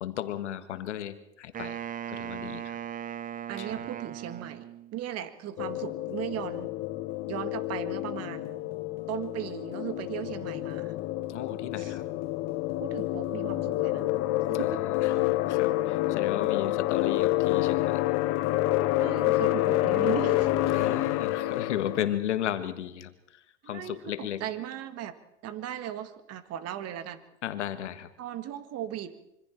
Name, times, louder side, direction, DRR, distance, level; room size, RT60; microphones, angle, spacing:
voice 1, 0.0-1.8 2.1-2.8 3.6-3.7 11.3-12.0 14.5-18.0 20.7-24.4 27.4-28.1, left 11 dB, 80° left, 10 dB, 1.7 m, -35 dB
Wind instrument woodwind instrument, 1.5-5.0, right 9 dB, 25° right, 0.7 m, -38 dB
voice 2, 3.5-6.7 7.3-8.7 9.1-11.0 11.8-12.0 12.8-14.1 14.5-14.7 19.0-20.5 23.6-25.2 25.4-27.2 28.2-29.1, right 11 dB, 45° right, 10 dB, 2.0 m, -37 dB
sound 1, 5.6-22.1, left 16 dB, 50° left, 1.4 m, -28 dB
26.0 x 24.5 x 4.5 m, 0.86 s
hypercardioid pair, 90°, 34 cm